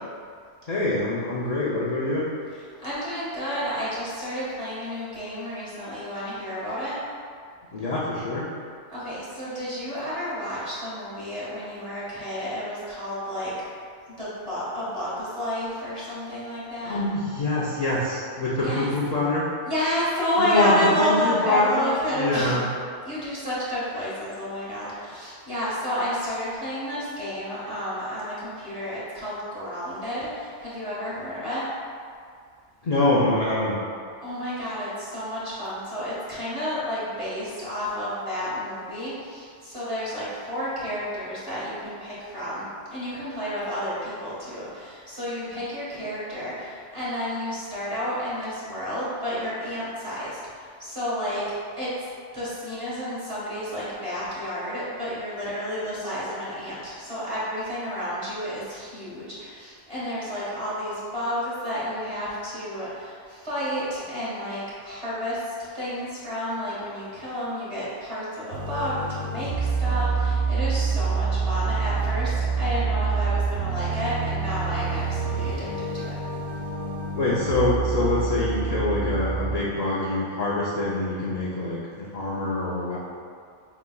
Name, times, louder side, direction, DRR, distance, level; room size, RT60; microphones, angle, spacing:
voice 1, 0.7-2.3 7.7-8.5 16.8-19.5 20.4-22.7 32.8-33.8 77.1-83.0, left 2 dB, 50° left, -7 dB, 0.4 m, -25 dB
voice 2, 2.8-7.0 8.9-13.5 14.1-17.0 18.6-18.9 19.6-22.6 23.0-31.6 34.2-51.4 51.8-52.1 52.3-76.2, equal, 25° right, -10 dB, 1.4 m, -31 dB
sound 1, 68.5-79.6, right 4 dB, 50° right, 0.5 m, -27 dB
4.7 x 4.0 x 2.3 m, 2.2 s
omnidirectional pair, 1.2 m